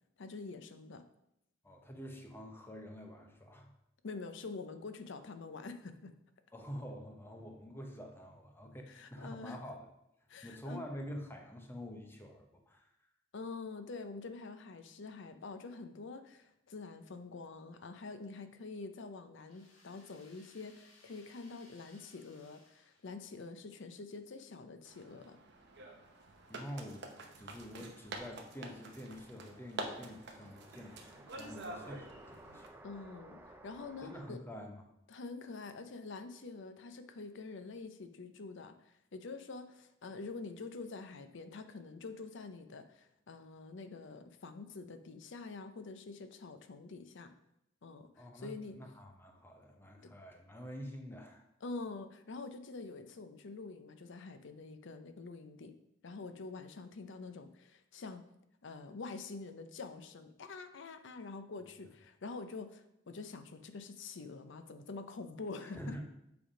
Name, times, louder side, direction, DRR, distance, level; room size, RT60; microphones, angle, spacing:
voice 1, 0.2-1.0 4.0-6.1 8.9-9.6 10.3-10.8 13.3-25.4 32.8-34.4 35.1-47.3 47.8-48.8 50.0-50.1 51.6-55.7 56.0-58.2 58.6-66.0, left 3 dB, 65° left, 9 dB, 0.6 m, -46 dB
voice 2, 1.6-3.7 6.5-9.9 10.4-12.9 26.5-32.8 34.0-34.8 48.2-51.5 65.6-66.0, equal, 10° left, 3 dB, 0.8 m, -47 dB
sound 1, 19.5-23.6, left 3 dB, 80° left, 1.3 m, -64 dB
sound 2, 24.8-32.7, right 2 dB, 60° right, 0.9 m, -47 dB
sound 3, 27.9-34.3, right 1 dB, 10° right, 0.5 m, -57 dB
7.7 x 3.5 x 4.9 m, 0.81 s
head